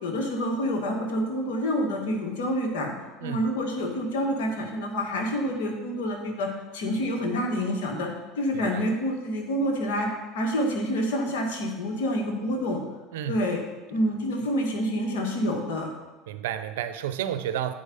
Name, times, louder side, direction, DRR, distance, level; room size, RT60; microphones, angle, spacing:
voice 1, 0.0-2.9 3.2-8.1 8.4-10.1 10.3-12.8 13.3-13.6 13.9-15.9, equal, 75° left, 0 dB, 1.8 m, -27 dB
voice 2, 8.5-8.9 13.1-13.4 16.3-17.7, right 10 dB, 80° right, 11 dB, 0.5 m, -31 dB
8.9 x 4.7 x 5.4 m, 1.2 s
hypercardioid pair, 90°, 0 cm